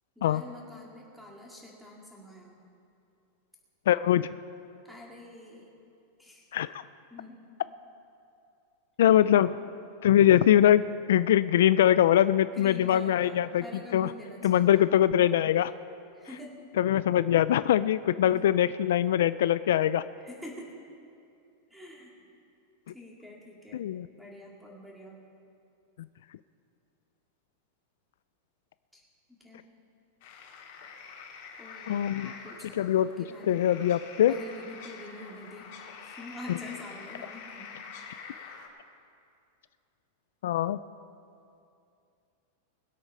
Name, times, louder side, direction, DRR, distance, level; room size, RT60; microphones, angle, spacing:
voice 1, 0.2-2.6 4.8-5.7 6.2-6.5 7.1-7.4 9.1-9.5 12.5-14.9 16.1-16.6 18.2-18.5 20.2-20.7 21.7-22.1 22.9-23.8 24.2-25.2 28.9-29.0 29.3-29.7 31.6-33.6 34.3-35.7 36.0-37.7, left 2 dB, ahead, -3 dB, 2.3 m, -46 dB
voice 2, 3.9-4.3 6.5-6.8 9.0-9.5 10.0-13.6 13.9-14.1 14.4-15.7 16.8-20.0 23.7-24.1 31.9-32.3 32.8-33.1 33.5-34.4 40.4-40.8, left 11 dB, 75° left, 15 dB, 0.3 m, -22 dB
sound 1, 30.2-38.7, left 6 dB, 55° left, 2.3 m, -46 dB
21.0 x 8.3 x 5.5 m, 2.5 s
supercardioid pair, 160°, 0 cm